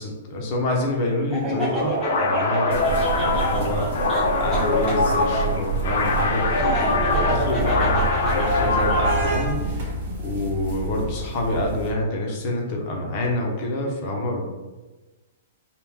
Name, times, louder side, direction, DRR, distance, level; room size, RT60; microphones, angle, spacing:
voice 1, 0.0-4.0 4.3-14.5, left 1 dB, 30° left, -1 dB, 0.8 m, -27 dB
Laughter, 1.3-5.0 6.5-9.4, right 1 dB, ahead, 1.1 m, -28 dB
sound 1, 2.0-9.4, left 3 dB, 55° left, 0.6 m, -24 dB
sound 2, 2.7-11.9, right 3 dB, 45° right, 1.0 m, -28 dB
4.4 x 2.4 x 3.6 m, 1.2 s
hypercardioid pair, 175°, 0 cm